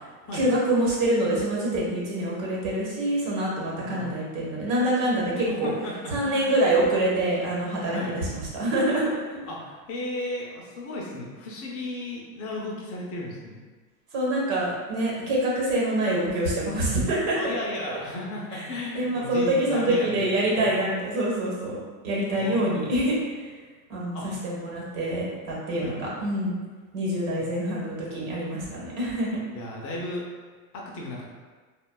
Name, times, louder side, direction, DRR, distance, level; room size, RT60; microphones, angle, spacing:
voice 1, 0.3-5.7 6.1-9.4 14.1-17.4 18.9-21.8 22.0-23.5 23.9-26.6 26.9-29.4, right 1 dB, 70° right, -4 dB, 1.2 m, -26 dB
voice 2, 3.6-4.1 5.5-6.5 7.9-8.1 9.5-13.6 17.3-20.7 22.4-22.7 24.1-24.3 25.8-26.0 27.4-27.5 29.5-30.3 30.7-31.2, left 1 dB, 35° left, -2 dB, 0.5 m, -35 dB
3.4 x 2.1 x 2.2 m, 1.4 s
supercardioid pair, 125°, 42 cm